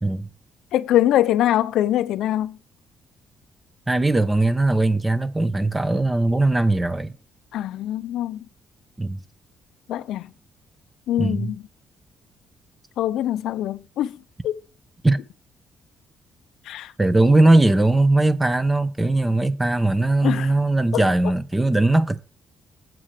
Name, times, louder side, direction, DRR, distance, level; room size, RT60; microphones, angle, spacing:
voice 1, 0.7-2.6 7.5-8.4 9.9-10.3 11.1-11.6 13.0-14.2 14.4-14.6 16.7-16.9 20.2-20.5 20.9-21.1, left 12 dB, 80° left, 0.4 m, -23 dB
voice 2, 3.9-7.1 9.0-9.2 11.2-11.5 15.0-15.2 17.0-22.2, right 2 dB, 15° right, 0.7 m, -19 dB
7.6 x 4.8 x 7.3 m
cardioid pair, 90°, 0 cm